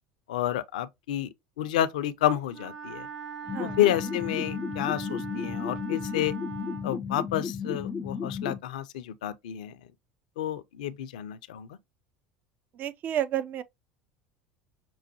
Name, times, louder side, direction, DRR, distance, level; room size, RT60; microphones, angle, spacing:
voice 1, 0.3-1.3 1.6-3.1 3.6-6.3 6.8-9.7 10.4-11.7, left 12 dB, 70° left, 0.5 m, -29 dB
Wind instrument woodwind instrument, 2.5-6.9, right 5 dB, 70° right, 2.2 m, -40 dB
sound 1, 3.5-8.6, left 6 dB, 15° left, 0.4 m, -34 dB
voice 2, 12.8-13.6, right 11 dB, 45° right, 0.4 m, -30 dB
6.1 x 2.1 x 2.9 m
hypercardioid pair, 75°, 4 cm